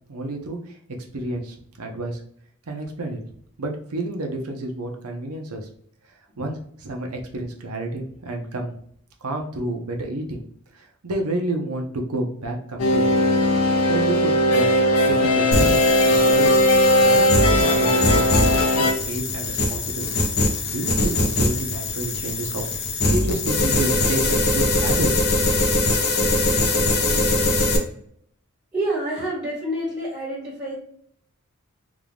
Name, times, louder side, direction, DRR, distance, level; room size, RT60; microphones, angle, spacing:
voice 1, 0.1-0.8 1.1-2.2 2.7-3.2 3.6-5.7 6.4-8.8 9.2-10.4 10.7-13.2 13.9-16.5 17.0-18.4 18.8-20.2 20.6-25.2, right 1 dB, 80° right, 2 dB, 0.8 m, -30 dB
sound 1, 12.8-18.9, left 1 dB, 80° left, 0.7 m, -18 dB
sound 2, 15.5-27.8, left 2 dB, 50° left, 0.7 m, -22 dB
voice 2, 28.7-30.7, right 1 dB, 15° right, -7 dB, 1.2 m, -27 dB
3.6 x 2.4 x 3.3 m, 0.65 s
head